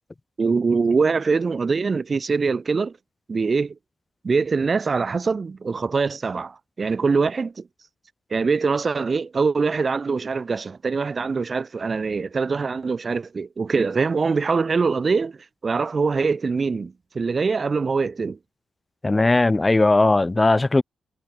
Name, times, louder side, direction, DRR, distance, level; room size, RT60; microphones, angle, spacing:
voice 1, 0.4-2.9 3.3-3.7 4.2-7.6 8.3-15.4 15.6-18.4, right 4 dB, 40° right, 2.0 m, -23 dB
voice 2, 19.0-20.8, left 2 dB, 20° left, 2.6 m, -18 dB
cardioid pair, 90°, 0 cm